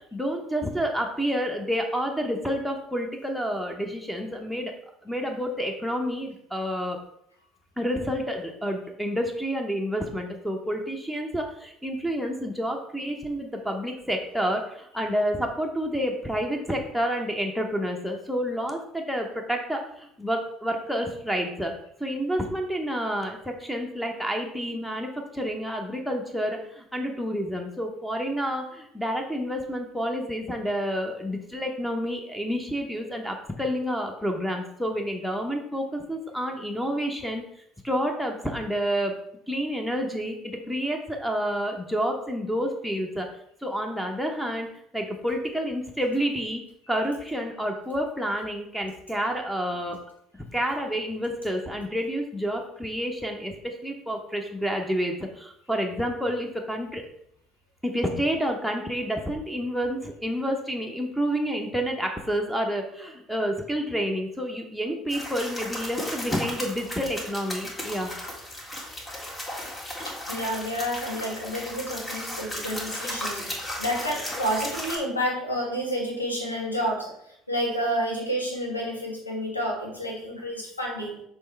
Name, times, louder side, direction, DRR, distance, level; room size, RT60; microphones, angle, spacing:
voice 1, 0.0-4.7 5.0-7.0 7.8-21.7 22.0-37.4 37.8-39.2 39.5-43.3 43.6-44.7 44.9-46.6 46.9-50.0 50.5-57.0 57.8-68.1, equal, ahead, 3 dB, 0.9 m, -29 dB
sound 1, 65.1-75.0, left 1 dB, 20° left, 2.0 m, -35 dB
voice 2, 70.1-81.2, equal, 90° left, -2 dB, 1.3 m, -30 dB
6.5 x 3.2 x 4.5 m, 0.73 s
figure-of-eight pair, 60°, 0 cm